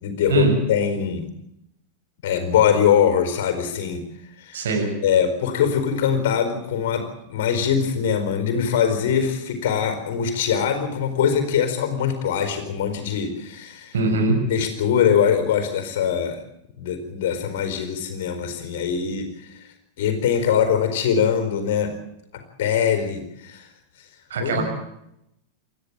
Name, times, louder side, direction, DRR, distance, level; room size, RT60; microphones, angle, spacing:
voice 1, 0.0-1.3 2.2-4.0 4.4-4.6 5.0-13.9 14.5-16.4 16.8-19.6 20.0-22.0 22.3-23.7 24.4-24.6, left 8 dB, 55° left, 8 dB, 4.5 m, -22 dB
voice 2, 4.5-4.9 13.9-14.4 24.3-24.6, right 3 dB, 60° right, 3 dB, 6.6 m, -21 dB
28.0 x 14.0 x 8.8 m, 0.81 s
figure-of-eight pair, 90°, 0 cm